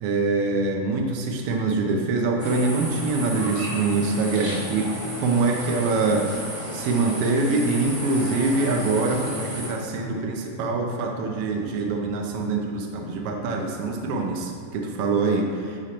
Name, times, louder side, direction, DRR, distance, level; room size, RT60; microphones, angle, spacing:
voice 1, 0.0-4.9 5.2-6.3 6.7-15.9, right 3 dB, 80° right, 1 dB, 1.3 m, -24 dB
sound 1, 2.4-9.7, equal, 45° right, 0.4 m, -33 dB
9.6 x 5.0 x 2.9 m, 2.5 s
omnidirectional pair, 3.3 m